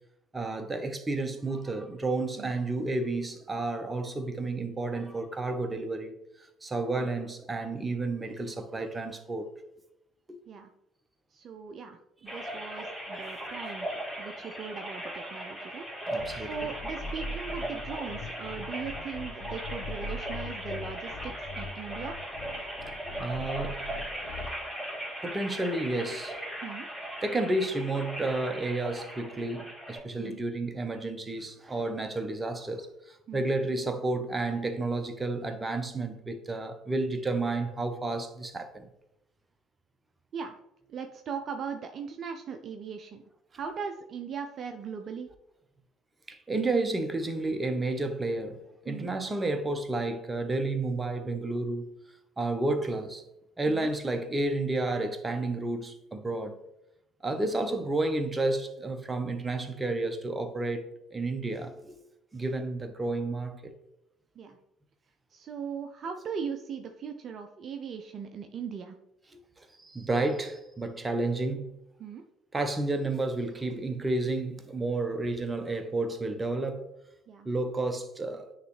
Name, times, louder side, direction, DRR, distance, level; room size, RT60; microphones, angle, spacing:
voice 1, 0.3-9.5 16.1-16.7 23.2-23.8 25.2-26.3 27.2-38.9 46.3-48.6 48.8-51.9 52.4-53.2 53.6-56.6 57.2-60.9 61.1-62.0 62.3-63.7 69.6-71.8 72.5-76.9 77.4-78.5, right 2 dB, 20° right, 0.9 m, -31 dB
voice 2, 11.3-13.9 14.2-22.2 26.6-26.9 30.2-30.4 33.3-33.5 40.3-40.6 40.9-43.2 43.5-45.3 48.9-49.1 53.7-53.9 64.4-64.6 65.3-69.0 72.0-72.2 77.3-77.5, right 6 dB, 50° right, 0.5 m, -39 dB
sound 1, 12.3-30.0, right 1 dB, 10° left, 2.4 m, -38 dB
sound 2, 16.2-24.5, left 2 dB, 65° left, 0.6 m, -41 dB
9.2 x 3.2 x 3.2 m
hypercardioid pair, 60°, 0 cm